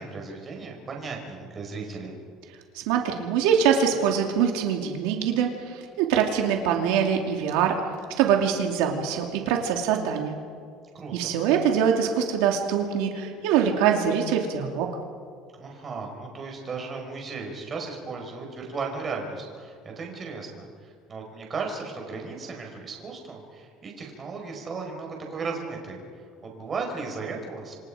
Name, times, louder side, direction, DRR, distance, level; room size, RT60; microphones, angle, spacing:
voice 1, 0.0-2.1 10.9-11.4 15.5-26.0 26.4-27.8, right 4 dB, 25° right, 1 dB, 5.2 m, -35 dB
voice 2, 2.7-7.8 8.2-10.4 11.1-14.9, right 8 dB, 85° right, 2 dB, 2.6 m, -24 dB
27.5 x 26.0 x 5.0 m, 2.3 s
cardioid pair, 155°, 0 cm